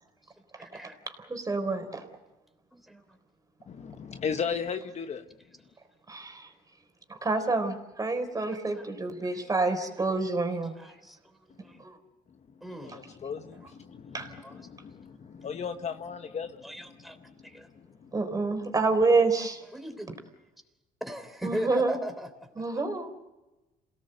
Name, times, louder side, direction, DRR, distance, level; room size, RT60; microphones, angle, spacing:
voice 1, 0.6-1.0 2.7-3.2 8.7-10.2 10.5-11.2 11.5-11.9 12.6-13.0 14.4-14.6 16.6-17.2 17.4-17.7 19.4-20.1 21.0-22.8, equal, ahead, 3.5 m, -40 dB
voice 2, 1.3-2.0 6.1-6.5 7.1-10.7 11.8-12.0 14.1-14.3 18.1-19.6 21.4-22.0 22.6-23.1, right 3 dB, 20° right, 4.0 m, -27 dB
voice 3, 3.7-5.2 11.6-11.7 12.8-16.6 17.5-18.1, left 6 dB, 40° left, 1.2 m, -36 dB
28.0 x 18.0 x 7.9 m
cardioid pair, 110°, 17 cm